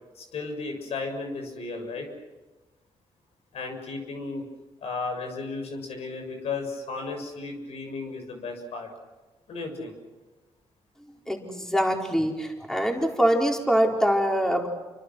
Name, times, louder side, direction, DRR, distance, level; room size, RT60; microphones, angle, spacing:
voice 1, 0.2-2.1 3.5-4.4 4.8-8.9 9.5-9.9, left 3 dB, 75° left, 4 dB, 7.0 m, -34 dB
voice 2, 11.3-14.7, equal, 5° left, 0 dB, 4.6 m, -24 dB
29.0 x 25.0 x 6.4 m, 1.1 s
cardioid pair, 80°, 11 cm